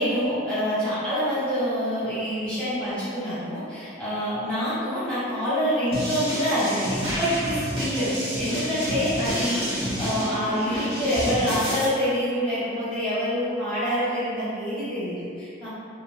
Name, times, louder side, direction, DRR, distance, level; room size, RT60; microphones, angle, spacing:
voice 1, 0.0-15.7, equal, 5° left, -14 dB, 1.2 m, -26 dB
sound 1, 5.9-11.8, equal, 30° right, 0.8 m, -29 dB
2.5 x 2.4 x 3.4 m, 2.4 s
head